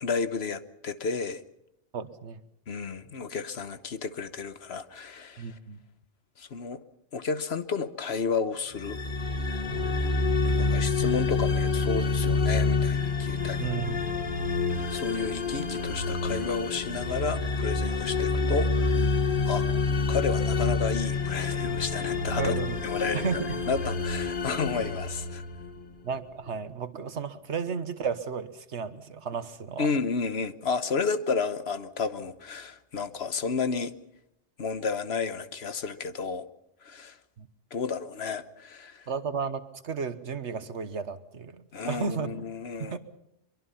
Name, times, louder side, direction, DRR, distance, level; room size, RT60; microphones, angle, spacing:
voice 1, 0.0-1.4 2.7-5.5 6.4-6.8 7.1-9.0 10.4-13.7 14.8-19.0 19.5-19.6 20.1-22.5 22.8-23.4 23.7-25.4 29.8-33.9 34.6-36.5 36.8-37.1 37.7-39.1 41.7-43.0, left 5 dB, 60° left, 12 dB, 1.3 m, -32 dB
voice 2, 1.9-2.4 5.4-5.8 9.7-9.9 13.6-14.3 22.3-22.8 23.1-23.6 24.8-24.9 26.0-29.9 37.4-37.5 39.1-42.4 42.8-43.0, right 6 dB, 70° right, 12 dB, 1.5 m, -33 dB
sound 1, 8.8-25.9, left 3 dB, 45° left, 1.7 m, -28 dB
23.5 x 23.5 x 5.7 m, 0.79 s
omnidirectional pair, 1.2 m